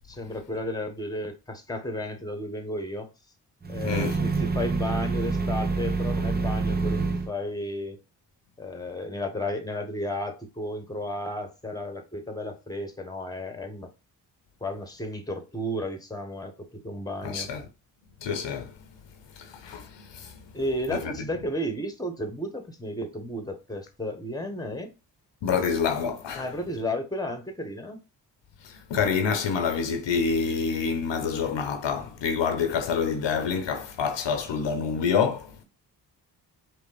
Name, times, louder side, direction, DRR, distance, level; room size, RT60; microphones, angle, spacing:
voice 1, 0.1-3.1 3.7-8.0 8.6-13.9 14.6-17.5 20.5-24.9 26.4-28.0, left 1 dB, 10° left, 1.3 m, -33 dB
sound 1, 3.6-7.3, right 4 dB, 20° right, 0.8 m, -27 dB
voice 2, 3.8-4.2 17.2-17.6 18.2-18.7 19.4-20.5 20.9-21.1 25.4-26.5 28.6-35.6, left 6 dB, 70° left, 0.9 m, -27 dB
5.3 x 2.1 x 4.1 m
supercardioid pair, 45°, 45 cm